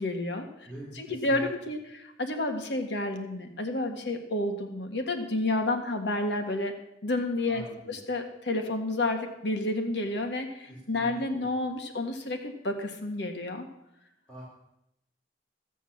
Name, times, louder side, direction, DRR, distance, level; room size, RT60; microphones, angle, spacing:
voice 1, 0.0-0.5 1.0-6.7 7.0-13.7, left 2 dB, 70° left, 5 dB, 1.6 m, -30 dB
voice 2, 0.6-1.5 7.5-8.0 10.7-11.5 14.3-14.4, equal, 5° left, -9 dB, 4.1 m, -45 dB
15.5 x 7.3 x 7.1 m, 0.83 s
head